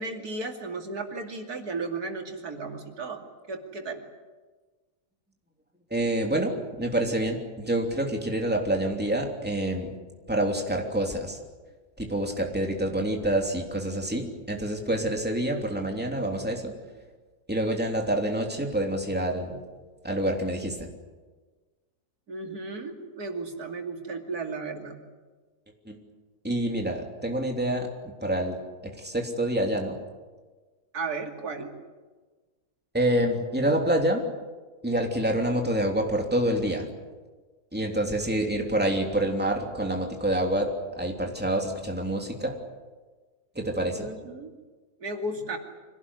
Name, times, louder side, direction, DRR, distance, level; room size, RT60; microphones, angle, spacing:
voice 1, 0.0-4.0 22.3-25.0 30.9-31.7 44.0-44.5 45.0-45.6, right 3 dB, 85° right, 3 dB, 3.2 m, -34 dB
voice 2, 5.9-9.9 10.3-11.4 12.0-16.7 17.5-19.6 20.0-20.9 25.8-26.0 26.4-27.9 28.2-28.6 28.8-30.0 32.9-34.2 34.8-36.9 37.7-42.5 43.5-44.1, right 1 dB, 5° right, 1 dB, 3.1 m, -27 dB
25.5 x 18.0 x 9.9 m, 1.3 s
omnidirectional pair, 1.6 m